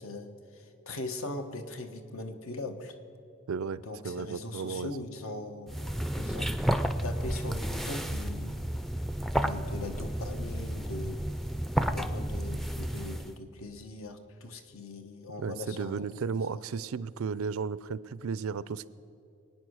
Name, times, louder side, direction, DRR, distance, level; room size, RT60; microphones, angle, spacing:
voice 1, 0.0-2.9 3.8-6.5 7.0-8.6 9.4-11.2 11.9-16.6, left 2 dB, 80° left, 7 dB, 1.2 m, -40 dB
voice 2, 3.5-4.9 15.4-18.9, right 5 dB, 85° right, 18 dB, 0.4 m, -34 dB
sound 1, 5.7-13.4, equal, ahead, 0.3 m, -32 dB
22.5 x 9.4 x 6.4 m, 2.7 s
head